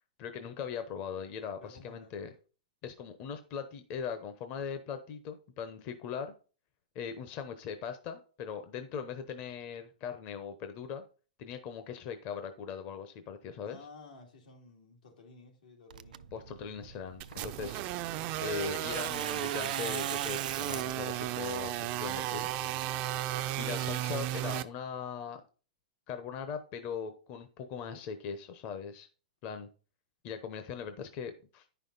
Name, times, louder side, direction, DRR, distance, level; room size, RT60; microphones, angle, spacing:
voice 1, 0.2-2.3 2.8-6.3 6.9-11.0 11.4-13.8 16.3-17.8 18.4-22.5 23.6-25.4 26.1-29.1 29.4-29.7 30.2-31.7, left 7 dB, 35° left, 0.8 m, -40 dB
voice 2, 1.6-2.2 13.6-16.3, left 3 dB, 85° left, 2.7 m, -54 dB
Tearing, 15.9-23.7, right 9 dB, 90° right, 0.4 m, -43 dB
sound 1, 17.2-24.6, right 14 dB, 35° right, 0.5 m, -34 dB
9.9 x 5.6 x 4.0 m
hypercardioid pair, 150°, 4 cm